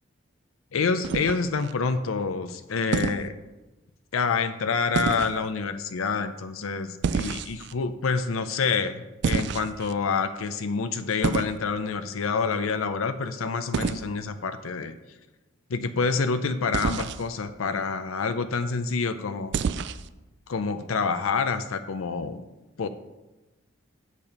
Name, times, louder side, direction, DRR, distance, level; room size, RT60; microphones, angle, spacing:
voice 1, 0.7-3.3 4.1-15.0 15.7-19.6 20.5-22.4 22.8-22.9, left 5 dB, 85° left, 10 dB, 0.5 m, -27 dB
Wet Metal Footsteps, 1.0-1.7 2.9-3.3 4.9-5.4 7.0-7.7 9.2-9.9 11.2-11.6 13.7-14.0 16.7-17.2 19.5-20.1, right 5 dB, 55° right, 0.3 m, -28 dB
8.2 x 6.8 x 5.3 m, 1.1 s
head